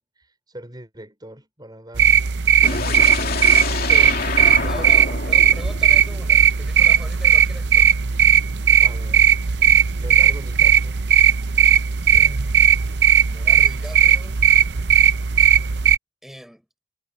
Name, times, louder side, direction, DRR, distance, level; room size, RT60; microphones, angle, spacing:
voice 1, 0.0-2.1 2.7-4.3 4.6-5.1 8.8-9.4 10.0-11.0, right 1 dB, 25° right, 5.1 m, -41 dB
sound 1, 1.9-16.0, right 8 dB, 65° right, 0.7 m, -17 dB
sound 2, 2.6-6.6, left 4 dB, 55° left, 2.9 m, -28 dB
voice 2, 4.3-7.9 12.1-13.0 13.3-14.4 16.2-16.7, equal, ahead, 5.8 m, -40 dB
head